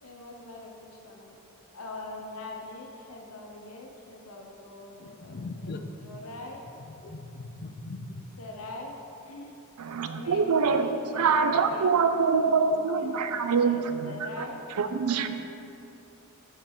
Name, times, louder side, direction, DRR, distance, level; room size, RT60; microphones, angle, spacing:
voice 1, 0.0-1.4 1.7-6.6 8.4-9.0 9.2-9.6 10.1-14.6, left 2 dB, 80° left, 0 dB, 0.9 m, -43 dB
voice 2, 5.0-5.9 7.0-8.2, left 2 dB, 45° left, 6 dB, 0.4 m, -39 dB
voice 3, 9.8-14.4 14.8-15.4, right 5 dB, 90° right, 9 dB, 0.5 m, -25 dB
6.0 x 4.1 x 6.0 m, 2.8 s
head